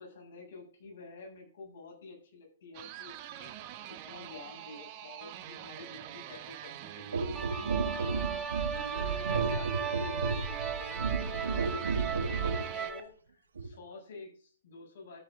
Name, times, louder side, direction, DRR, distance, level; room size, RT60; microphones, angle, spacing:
voice 1, 0.0-3.5 3.8-7.7 7.9-8.4 8.7-15.2, left 3 dB, 55° left, 0 dB, 7.9 m, -49 dB
sound 1, 2.7-12.9, right 12 dB, 40° right, 1.5 m, -45 dB
sound 2, 7.1-12.7 13.6-13.7, right 5 dB, 75° right, 1.8 m, -33 dB
sound 3, 7.4-13.0, right 6 dB, 10° right, 1.6 m, -37 dB
13.5 x 10.5 x 3.9 m, 0.42 s
figure-of-eight pair, 120°, 0 cm